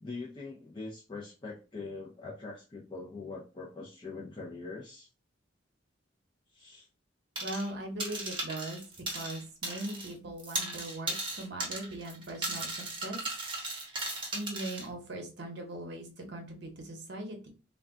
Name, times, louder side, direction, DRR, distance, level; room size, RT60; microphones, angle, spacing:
voice 1, 0.0-5.1 6.5-6.9, left 3 dB, 25° left, -4 dB, 0.4 m, -43 dB
sound 1, 7.4-7.7 8.0-10.1 10.4-14.9, right 2 dB, 25° right, 0.8 m, -36 dB
voice 2, 7.4-8.8 9.1-13.2 14.3-17.5, right 1 dB, 60° right, 2 dB, 0.8 m, -40 dB
2.3 x 2.2 x 3.5 m, 0.33 s
head